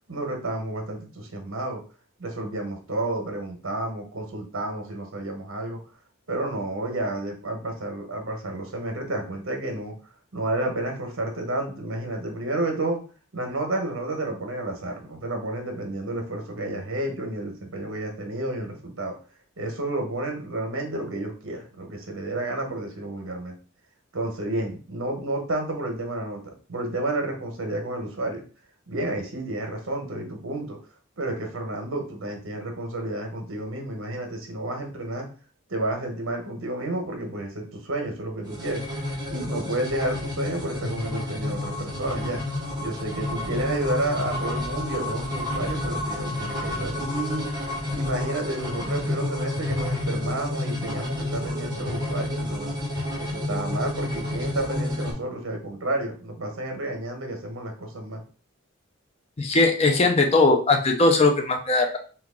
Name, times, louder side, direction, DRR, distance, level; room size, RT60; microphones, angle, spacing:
voice 1, 0.1-1.8 2.2-5.8 6.3-9.9 10.3-13.0 13.3-19.1 19.6-23.6 24.1-28.4 28.9-30.8 31.2-35.3 35.7-38.8 39.3-42.4 42.8-47.5 47.9-52.8 53.2-58.2, right 1 dB, 65° right, 3 dB, 1.0 m, -31 dB
sound 1, 38.4-55.1, left 1 dB, 20° right, 0.9 m, -30 dB
voice 2, 59.4-62.0, left 3 dB, 30° left, 3 dB, 0.5 m, -19 dB
3.0 x 2.4 x 3.6 m, 0.37 s
head